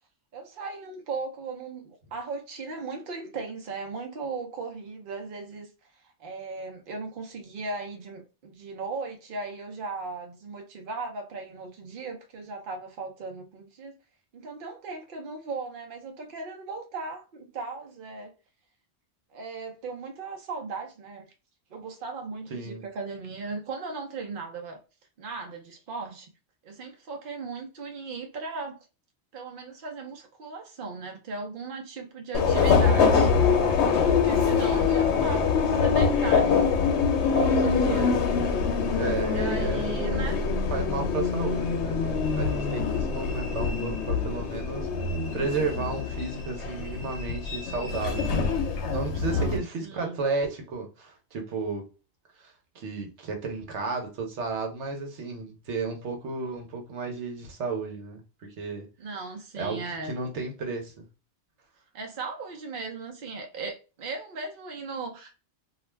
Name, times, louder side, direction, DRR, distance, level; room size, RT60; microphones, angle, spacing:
voice 1, 0.3-5.7 6.2-13.9 14.3-18.3 19.3-21.3 21.7-24.8 25.2-26.3 26.6-28.8 29.3-33.8 34.1-36.6 37.2-38.2 39.3-40.4 49.2-50.2 59.0-60.2 61.9-65.4, right 4 dB, 55° right, 0.8 m, -37 dB
voice 2, 22.5-22.8 37.9-38.1 39.0-40.2 40.7-48.6 48.9-51.9 52.4-58.2 58.6-58.9 59.6-61.1, right 4 dB, 85° right, 1.1 m, -33 dB
Subway metro underground, 32.3-49.6, left 5 dB, 80° left, 0.9 m, -24 dB
2.4 x 2.3 x 3.1 m
omnidirectional pair, 1.1 m